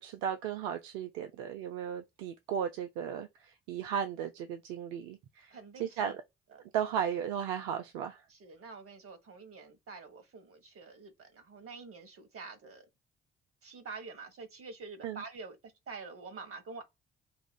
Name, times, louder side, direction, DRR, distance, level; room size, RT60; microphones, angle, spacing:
voice 1, 0.0-5.5 5.8-6.2 6.7-8.2 15.0-15.2, right 8 dB, 70° right, 0.5 m, -35 dB
voice 2, 5.5-6.2 6.5-6.7 8.3-12.8 13.6-16.8, right 4 dB, 50° right, 1.3 m, -47 dB
5.0 x 2.4 x 2.2 m
figure-of-eight pair, 40°, 30 cm